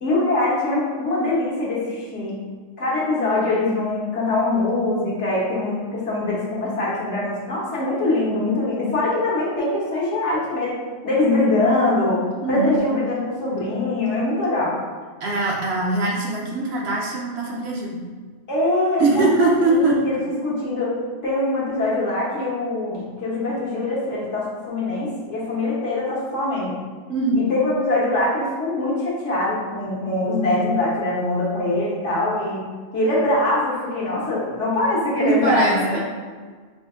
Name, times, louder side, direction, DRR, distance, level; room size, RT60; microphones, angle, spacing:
voice 1, 0.0-2.4 2.8-10.8 11.0-12.2 12.5-14.8 18.5-20.9 21.2-26.7 27.3-32.7 32.9-36.0, left 2 dB, 65° left, -6 dB, 1.3 m, -23 dB
voice 2, 12.4-12.7 15.2-18.0 19.0-20.0 27.1-27.4 35.2-36.1, right 2 dB, 60° right, -3 dB, 0.9 m, -21 dB
5.0 x 2.7 x 2.5 m, 1.5 s
omnidirectional pair, 1.3 m